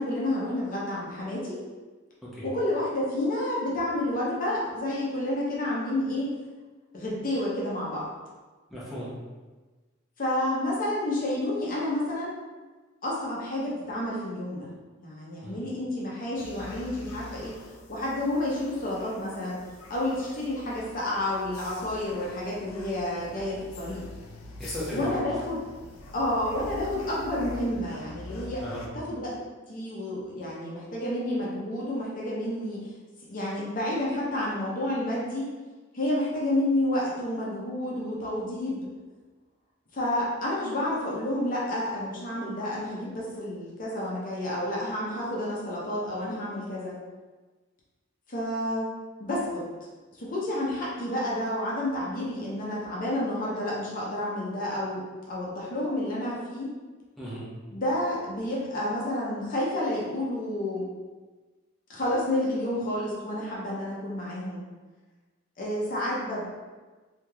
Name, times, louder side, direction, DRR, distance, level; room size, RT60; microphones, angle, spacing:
voice 1, 0.0-1.6 2.4-6.3 6.9-8.1 10.2-12.3 13.0-14.7 15.0-17.5 17.9-19.6 19.9-24.0 24.9-25.6 26.1-28.6 28.9-29.4 29.7-32.8 33.3-35.5 35.9-38.8 39.9-46.9 48.3-48.9 49.2-49.7 50.1-56.7 57.7-60.9 61.9-64.6 65.6-66.5, left 1 dB, 40° left, -5 dB, 0.7 m, -30 dB
voice 2, 8.7-9.1 15.4-15.6 24.6-25.2 28.6-28.9 57.2-57.5, equal, ahead, -9 dB, 0.6 m, -35 dB
sound 1, 16.4-28.9, left 1 dB, 90° left, 0.4 m, -45 dB
3.1 x 2.8 x 2.3 m, 1.3 s
head